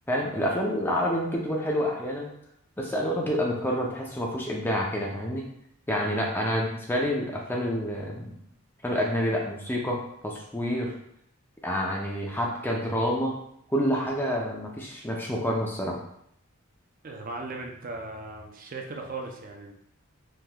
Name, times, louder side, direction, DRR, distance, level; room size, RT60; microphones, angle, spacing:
voice 1, 0.1-2.3 2.8-5.4 5.9-8.4 8.8-10.9 11.6-13.3 13.7-16.0, equal, 10° left, -2 dB, 0.5 m, -28 dB
voice 2, 17.0-19.8, right 3 dB, 40° right, 2 dB, 0.5 m, -38 dB
3.5 x 2.9 x 2.2 m, 0.73 s
head